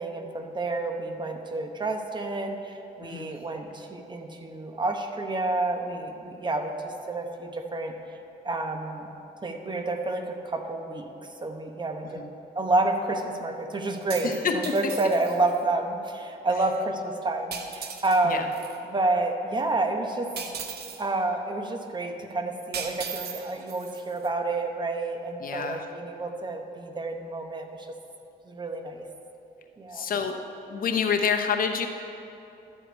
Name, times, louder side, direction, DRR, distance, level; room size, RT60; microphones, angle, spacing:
voice 1, 0.0-7.9 8.4-9.1 9.4-11.1 11.4-12.2 12.5-20.3 21.0-27.9 28.5-29.0 29.8-30.1, right 2 dB, 25° right, 4 dB, 0.9 m, -29 dB
voice 2, 3.0-3.3 12.1-12.3 14.2-14.7 18.2-18.5 25.4-25.9 29.9-30.4 30.7-31.9, left 6 dB, 50° left, 5 dB, 0.8 m, -27 dB
sound 1, 13.9-15.6 17.5-18.8 20.4-21.1 22.7-24.3, right 6 dB, 60° right, 1.0 m, -38 dB
12.0 x 5.0 x 8.0 m, 2.9 s
cardioid pair, 110°, 18 cm